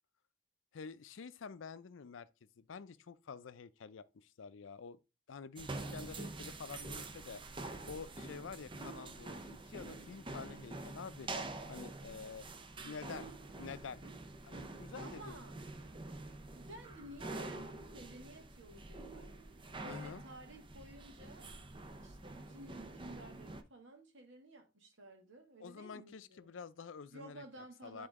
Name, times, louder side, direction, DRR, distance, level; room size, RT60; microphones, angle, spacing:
voice 1, 0.7-2.3 2.6-5.0 5.3-7.6 7.9-11.3 11.7-12.5 12.8-13.3 13.6-14.0 14.4-15.4 19.8-20.2 25.6-27.4 27.8-28.1, left 5 dB, 85° left, 0.5 m, -48 dB
sound 1, 5.6-23.6, right 2 dB, 25° right, 0.6 m, -47 dB
voice 2, 15.0-15.6 16.5-21.5 22.0-26.5 27.1-28.1, right 1 dB, 75° right, 2.0 m, -54 dB
9.8 x 3.8 x 3.6 m
head